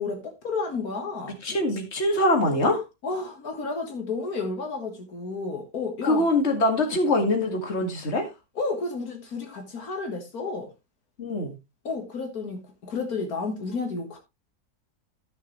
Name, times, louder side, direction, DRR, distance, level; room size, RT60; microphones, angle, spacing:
voice 1, 0.0-1.4 3.0-6.3 8.6-10.7 11.8-14.2, left 4 dB, 75° left, 2.1 m, -31 dB
voice 2, 1.4-2.8 6.0-8.3 11.2-11.5, left 1 dB, 45° left, 2.4 m, -23 dB
14.5 x 6.5 x 3.2 m
omnidirectional pair, 1.6 m